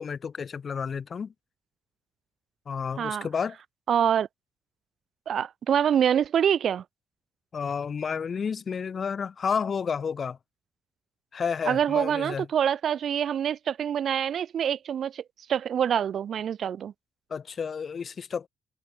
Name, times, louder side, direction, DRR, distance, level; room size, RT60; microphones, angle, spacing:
voice 1, 0.0-1.3 2.7-3.6 7.5-10.4 11.3-12.5 17.3-18.5, left 6 dB, 45° left, 0.7 m, -31 dB
voice 2, 3.9-4.3 5.3-6.8 11.7-15.2 15.5-16.9, right 9 dB, 60° right, 0.5 m, -25 dB
cardioid pair, 90°, 0 cm